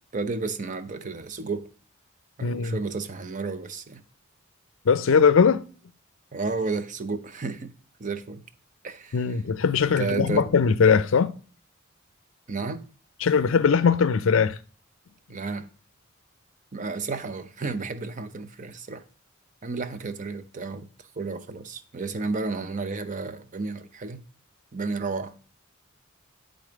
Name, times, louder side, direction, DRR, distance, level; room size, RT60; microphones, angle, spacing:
voice 1, 0.1-1.7 2.4-4.0 6.3-7.7 8.0-8.4 8.8-9.3 9.8-10.5 12.5-12.9 15.3-15.7 16.7-19.0 19.6-20.9 21.2-24.2 24.7-25.4, right 4 dB, 40° right, 0.5 m, -32 dB
voice 2, 2.4-2.8 4.9-5.6 9.1-11.3 13.2-14.6, left 6 dB, 65° left, 0.4 m, -20 dB
9.4 x 3.9 x 5.0 m
head